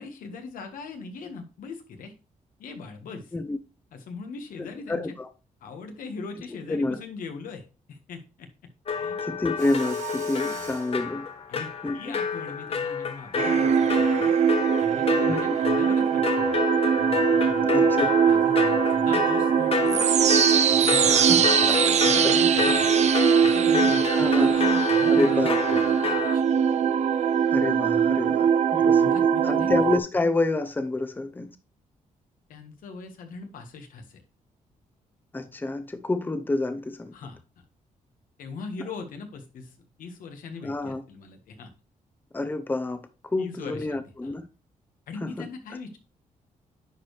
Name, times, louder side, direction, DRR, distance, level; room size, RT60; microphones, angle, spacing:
voice 1, 0.0-2.1 2.6-3.3 3.9-5.1 5.6-9.2 10.4-10.7 11.5-14.3 14.8-16.6 17.0-17.9 18.2-20.2 20.7-23.1 23.4-24.0 24.5-25.4 25.7-26.5 28.7-29.7 32.5-34.2 37.1-37.4 38.4-41.7 43.4-44.3 45.1-46.0, left 4 dB, 90° left, 1.5 m, -40 dB
voice 2, 4.6-5.3 6.7-7.0 9.2-11.3 11.8-12.2 15.3-15.6 17.7-18.2 21.1-22.3 24.1-24.6 25.1-25.8 27.5-31.6 35.3-37.1 40.6-41.0 42.3-44.5 45.2-45.5, left 2 dB, 15° left, 0.7 m, -29 dB
sound 1, 8.9-26.4, left 6 dB, 45° left, 0.9 m, -29 dB
Mechanisms, 9.6-11.0, right 7 dB, 75° right, 3.9 m, -39 dB
sound 2, 13.4-30.0, right 7 dB, 55° right, 0.6 m, -21 dB
9.8 x 4.6 x 3.3 m
cardioid pair, 115°, 14 cm